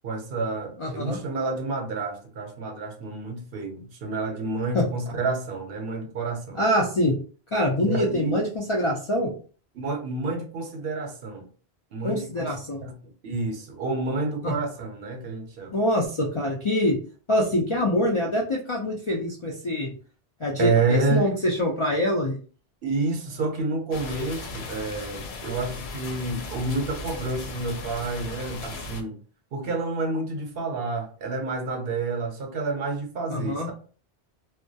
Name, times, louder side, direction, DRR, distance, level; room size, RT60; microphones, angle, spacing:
voice 1, 0.0-6.6 7.8-8.4 9.7-11.4 11.9-12.5 12.8-15.8 20.6-21.3 22.8-29.2 29.5-33.7, right 3 dB, 65° right, 0.8 m, -29 dB
voice 2, 0.8-1.2 4.7-4.9 6.5-7.2 7.5-9.3 12.0-12.8 14.4-14.5 15.7-17.0 17.3-19.9 20.4-22.4 33.3-33.7, left 1 dB, 55° left, 0.3 m, -25 dB
sound 1, 23.9-29.0, left 3 dB, 80° left, 0.8 m, -37 dB
2.2 x 2.1 x 2.6 m
omnidirectional pair, 1.1 m